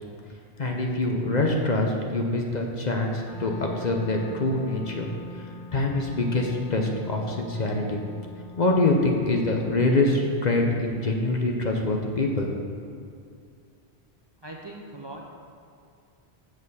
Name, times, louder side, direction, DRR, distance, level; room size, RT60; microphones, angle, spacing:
voice 1, 0.6-5.1 5.3-5.4 5.7-8.0 8.6-12.5, left 2 dB, 45° left, 1 dB, 0.8 m, -25 dB
Wind instrument woodwind instrument, 3.2-10.4, left 1 dB, 85° left, 2.0 m, -43 dB
voice 2, 14.4-15.2, right 2 dB, 30° right, -1 dB, 0.6 m, -40 dB
7.2 x 6.5 x 5.5 m, 2.5 s
omnidirectional pair, 1.1 m